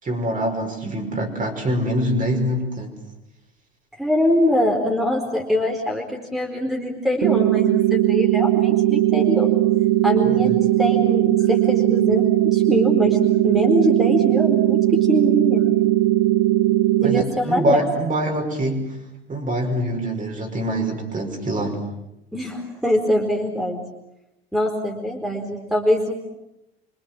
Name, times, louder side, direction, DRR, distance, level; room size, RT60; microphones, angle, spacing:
voice 1, 0.0-3.0 10.2-10.6 17.0-19.0 19.3-21.8, right 1 dB, 25° right, 3 dB, 5.9 m, -24 dB
voice 2, 4.0-9.5 10.0-15.6 17.0-17.8 22.3-23.8 24.5-26.1, left 1 dB, ahead, 1 dB, 4.4 m, -23 dB
sound 1, 7.2-17.2, right 15 dB, 55° right, 2.2 m, -18 dB
27.5 x 26.0 x 7.6 m, 0.89 s
figure-of-eight pair, 65°, 30 cm